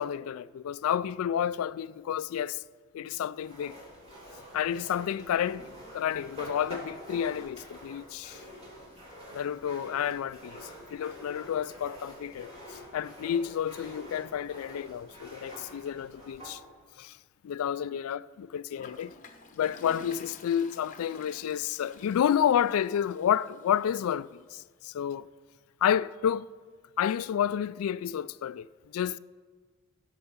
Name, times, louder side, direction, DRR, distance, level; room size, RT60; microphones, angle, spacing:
voice 1, 0.0-2.6 2.9-3.8 4.5-5.7 5.9-8.4 9.3-16.6 17.0-17.2 17.4-19.1 19.5-25.3 25.8-26.5 27.0-28.7 28.9-29.2, left 9 dB, 75° left, 0.3 m, -30 dB
sound 1, 3.4-16.6, equal, 30° right, 3.2 m, -47 dB
Toilet flush, 18.7-23.8, left 3 dB, 35° left, 0.9 m, -50 dB
15.5 x 5.6 x 7.2 m
head